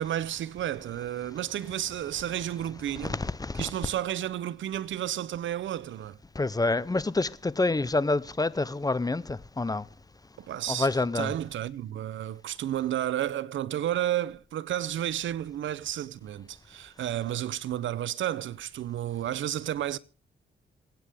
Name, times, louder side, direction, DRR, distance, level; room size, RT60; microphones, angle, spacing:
voice 1, 0.0-3.1 3.6-6.2 10.5-10.9 11.1-20.0, right 12 dB, 85° right, 0.7 m, -32 dB
voice 2, 3.0-3.7 6.4-9.8 10.7-11.3, left 2 dB, 20° left, 0.7 m, -27 dB
27.0 x 9.3 x 3.5 m
cardioid pair, 75°, 19 cm